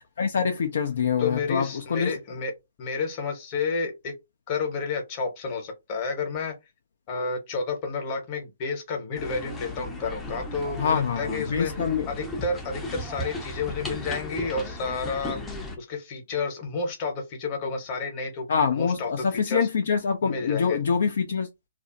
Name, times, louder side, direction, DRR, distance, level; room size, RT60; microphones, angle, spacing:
voice 1, 0.2-2.1 10.8-12.1 18.5-21.5, left 6 dB, 60° left, 0.4 m, -25 dB
voice 2, 1.2-2.5 2.8-4.1 4.5-6.5 7.1-11.7 12.1-15.4 15.8-18.5 18.7-19.7 20.2-20.8, left 4 dB, 30° left, 1.0 m, -30 dB
sound 1, 9.1-15.8, left 1 dB, 10° left, 0.5 m, -36 dB
2.5 x 2.0 x 2.5 m
figure-of-eight pair, 135°, 0 cm